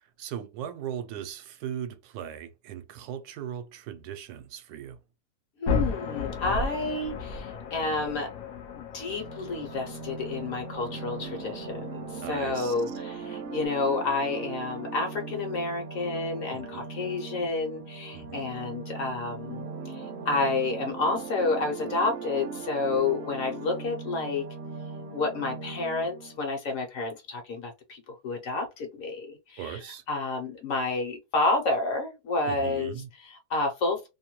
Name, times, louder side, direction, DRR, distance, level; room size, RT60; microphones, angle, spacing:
voice 1, 0.2-5.0 12.2-12.7 16.5-16.9 18.1-18.4 29.6-30.0 32.5-33.1, right 9 dB, 75° right, 1.1 m, -38 dB
voice 2, 5.6-8.3 8.7-24.5 25.1-29.8 30.1-34.1, left 3 dB, 65° left, 1.0 m, -30 dB
sound 1, 5.7-13.7, left 5 dB, 90° left, 0.5 m, -35 dB
sound 2, 9.0-26.4, right 4 dB, 55° right, 0.7 m, -39 dB
2.7 x 2.2 x 2.9 m
omnidirectional pair, 1.7 m